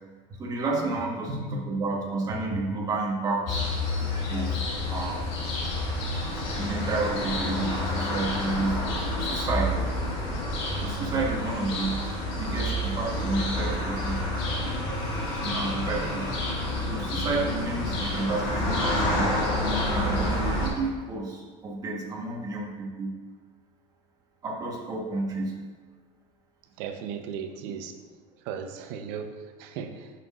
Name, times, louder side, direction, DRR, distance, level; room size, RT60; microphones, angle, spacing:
voice 1, 0.4-3.6 4.3-5.2 6.4-8.9 9.2-9.7 10.8-12.1 12.4-14.3 15.4-16.3 16.9-19.4 19.9-23.2 24.4-25.6, right 3 dB, 25° right, -1 dB, 1.3 m, -30 dB
sound 1, 3.5-20.7, left 1 dB, 70° left, 2.3 m, -29 dB
voice 2, 26.8-27.9 28.4-30.1, right 7 dB, 65° right, 7 dB, 0.8 m, -36 dB
11.0 x 5.9 x 2.5 m, 1.5 s
cardioid pair, 155°, 16 cm